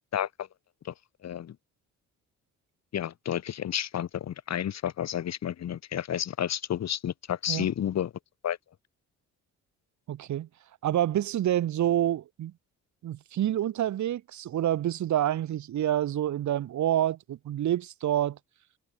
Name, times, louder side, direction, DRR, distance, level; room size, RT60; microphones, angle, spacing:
voice 1, 1.2-1.6 2.9-8.1 8.4-8.6, left 10 dB, 60° left, 2.1 m, -31 dB
voice 2, 10.1-10.5 10.8-12.5 13.0-18.4, right 12 dB, 70° right, 2.5 m, -27 dB
cardioid pair, 90°, 30 cm